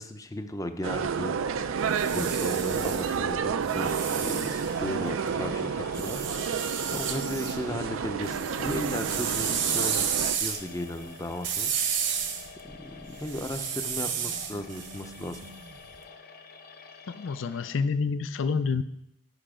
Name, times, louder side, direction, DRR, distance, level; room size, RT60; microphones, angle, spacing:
voice 1, 0.0-1.7 2.1-3.9 4.2-6.7 6.9-10.0 10.4-11.7 12.1-12.2 12.6-15.5, left 1 dB, 15° left, 8 dB, 0.6 m, -36 dB
sound 1, 0.8-10.4, right 6 dB, 80° right, 0.4 m, -30 dB
sound 2, 1.7-5.3 5.9-7.6 7.9-15.9, right 7 dB, 60° right, 0.9 m, -32 dB
sound 3, 3.8-17.8, left 5 dB, 45° left, 1.0 m, -49 dB
voice 2, 17.2-18.8, left 5 dB, 65° left, 12 dB, 0.4 m, -28 dB
11.0 x 5.6 x 5.0 m, 0.78 s
head